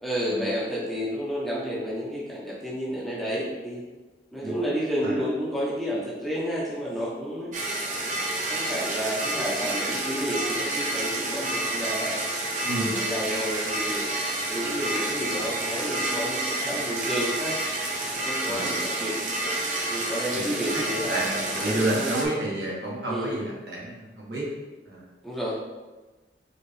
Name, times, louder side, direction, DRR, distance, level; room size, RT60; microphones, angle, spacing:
voice 1, 0.0-3.8 4.3-7.5 8.5-12.2 12.7-14.1 14.5-17.6 18.2-19.2 19.9-22.1 23.1-23.3 25.2-25.6, equal, ahead, -7 dB, 0.8 m, -31 dB
sound 1, 7.5-22.3, right 1 dB, 45° right, 0.7 m, -29 dB
voice 2, 12.6-12.9 15.3-15.5 18.5-18.7 20.3-20.4 20.7-24.5 24.9-25.0, right 1 dB, 65° right, -5 dB, 1.3 m, -30 dB
4.4 x 3.2 x 3.3 m, 1.2 s
head